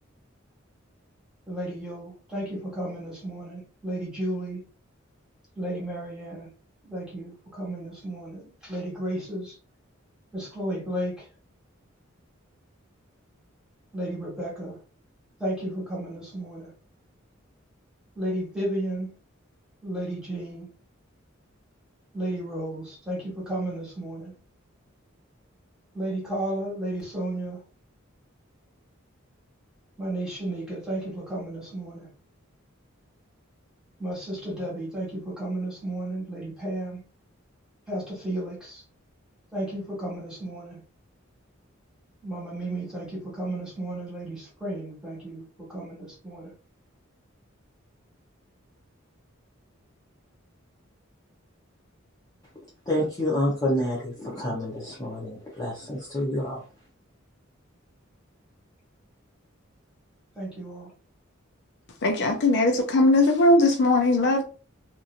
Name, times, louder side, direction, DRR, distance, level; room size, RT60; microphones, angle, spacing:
voice 1, 1.5-4.6 5.5-6.5 6.8-9.6 10.3-11.3 13.9-14.8 15.4-16.7 18.1-19.1 19.8-20.7 22.1-24.3 25.9-27.6 30.0-32.1 34.0-37.0 37.9-38.8 39.5-40.8 42.2-46.5 60.3-60.9, right 1 dB, 5° right, 1.5 m, -33 dB
voice 2, 52.9-56.6, left 1 dB, 20° left, 0.8 m, -28 dB
voice 3, 62.0-64.4, left 2 dB, 55° left, 0.5 m, -20 dB
2.9 x 2.6 x 2.5 m
head